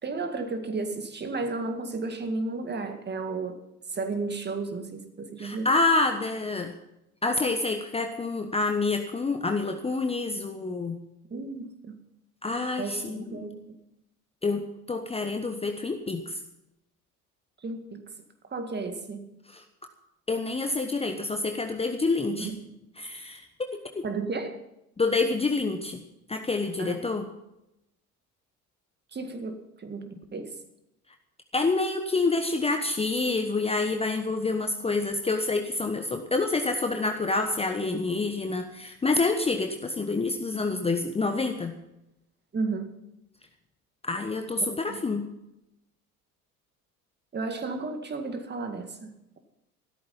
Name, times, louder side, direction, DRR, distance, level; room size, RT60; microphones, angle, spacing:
voice 1, 0.0-3.6 3.9-5.7 11.3-12.0 12.8-13.6 17.6-18.0 18.4-19.2 22.4-22.5 24.0-24.6 26.8-27.0 29.1-30.6 42.5-42.9 44.6-45.0 47.3-49.4, right 3 dB, 20° right, 7 dB, 2.1 m, -33 dB
voice 2, 5.4-6.7 7.2-11.0 12.4-13.5 14.4-16.4 19.5-19.6 20.3-22.5 23.0-23.5 23.7-24.0 25.0-26.0 26.3-27.2 31.5-41.7 44.0-45.3, left 3 dB, 15° left, 6 dB, 1.1 m, -27 dB
14.5 x 13.0 x 5.6 m, 0.87 s
figure-of-eight pair, 70°, 45 cm